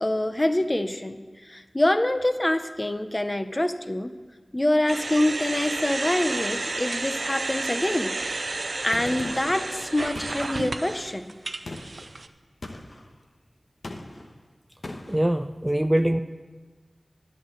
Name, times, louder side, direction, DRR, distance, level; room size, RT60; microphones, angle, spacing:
voice 1, 0.0-4.1 4.5-8.1 8.8-11.3 16.0-16.1, left 1 dB, 25° left, 9 dB, 0.7 m, -25 dB
sound 1, 4.9-12.3, right 2 dB, 70° right, 0.5 m, -31 dB
Gunshot gunfire, 8.9-9.6 10.2-10.9 11.7-12.1 12.6-13.1 13.8-14.3 14.8-15.2, left 2 dB, 70° left, 1.0 m, -39 dB
voice 2, 15.1-16.2, right 1 dB, 15° right, 9 dB, 0.4 m, -23 dB
11.0 x 6.6 x 7.7 m, 1.3 s
wide cardioid pair, 55°, 0 cm